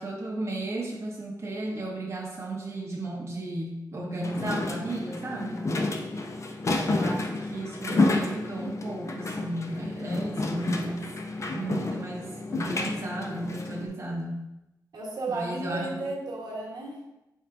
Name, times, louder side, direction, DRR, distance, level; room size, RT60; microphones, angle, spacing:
voice 1, 0.0-5.7 6.8-11.1 11.5-14.5 15.3-16.1, right 2 dB, 40° right, -3 dB, 0.7 m, -34 dB
sound 1, 4.2-13.9, left 2 dB, 45° left, 0.4 m, -30 dB
voice 2, 5.3-6.1 14.9-17.0, right 2 dB, 70° right, -3 dB, 1.0 m, -35 dB
4.5 x 3.6 x 2.4 m, 0.94 s
cardioid pair, 70°, 7 cm